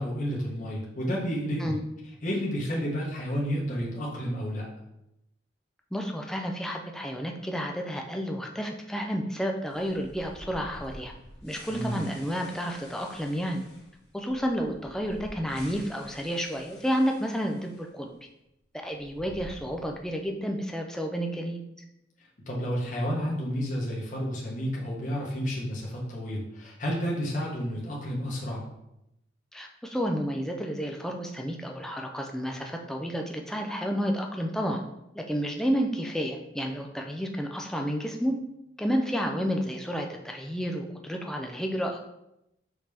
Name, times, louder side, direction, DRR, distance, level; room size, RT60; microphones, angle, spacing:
voice 1, 0.0-1.8 2.2-4.7 11.7-12.0 22.5-28.6, equal, 45° left, -4 dB, 0.9 m, -31 dB
voice 2, 5.9-11.1 11.4-13.6 14.1-18.1 18.7-21.6 29.5-34.8 35.1-38.3 38.8-42.0, equal, 5° left, 2 dB, 0.3 m, -31 dB
sound 1, 9.7-17.9 18.1-18.2 18.9-20.2, equal, 60° left, 1.3 m, -49 dB
4.9 x 2.8 x 3.4 m, 0.85 s
head